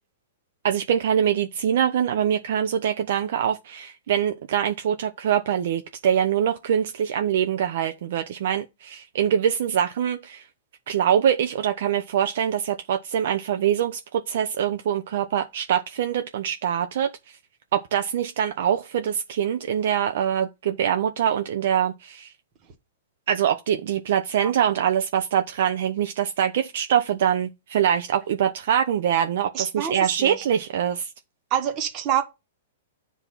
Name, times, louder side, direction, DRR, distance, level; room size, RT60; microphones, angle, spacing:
voice 1, 0.6-10.4 10.9-17.4 17.7-22.3 23.3-31.1, right 9 dB, 65° right, 0.5 m, -24 dB
voice 2, 29.5-30.4 31.5-32.2, right 10 dB, 35° right, 1.3 m, -26 dB
8.1 x 2.7 x 5.7 m
hypercardioid pair, 120°, 0 cm